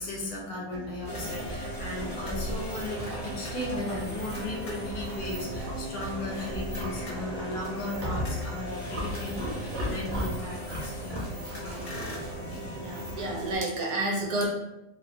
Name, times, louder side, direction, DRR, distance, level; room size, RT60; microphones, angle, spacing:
voice 1, 0.0-12.2 12.5-12.9, left 2 dB, 70° left, -2 dB, 1.0 m, -37 dB
sound 1, 0.7-9.5, right 2 dB, 90° right, 1.2 m, -44 dB
Livestock farm animals working animals, 1.0-12.7, equal, 55° right, 0.7 m, -38 dB
sound 2, 1.1-13.6, right 1 dB, 40° left, 0.8 m, -38 dB
voice 2, 12.8-14.5, right 2 dB, 70° right, -2 dB, 1.0 m, -30 dB
2.9 x 2.0 x 2.5 m, 0.93 s
omnidirectional pair, 1.8 m